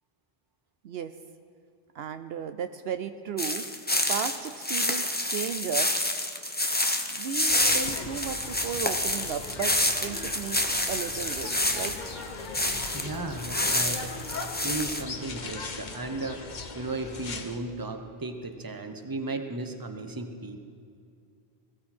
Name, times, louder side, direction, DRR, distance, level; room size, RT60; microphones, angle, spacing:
voice 1, 1.9-3.7 4.1-6.0 7.1-12.0, right 8 dB, 70° right, 10 dB, 0.8 m, -35 dB
sound 1, 3.4-13.1 13.4-15.0, left 1 dB, 10° left, 0.7 m, -28 dB
sound 2, 7.5-17.6, left 3 dB, 45° left, 1.1 m, -39 dB
voice 2, 12.9-14.2 14.6-20.6, right 2 dB, 20° right, 6 dB, 0.9 m, -35 dB
20.5 x 15.5 x 4.3 m, 2.4 s
omnidirectional pair, 1.1 m